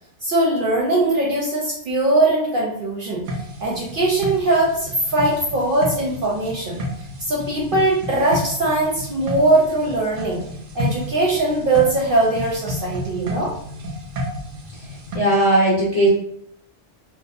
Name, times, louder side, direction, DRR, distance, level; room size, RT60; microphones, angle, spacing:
voice 1, 0.2-3.2 3.6-6.8 7.3-10.4 10.7-13.5, right 2 dB, 60° right, -3 dB, 0.6 m, -20 dB
sound 1, 3.2-15.2, equal, 85° right, 1.0 m, -31 dB
voice 2, 15.1-16.1, right 1 dB, 45° left, -7 dB, 0.5 m, -17 dB
2.7 x 2.1 x 2.4 m, 0.71 s
omnidirectional pair, 1.3 m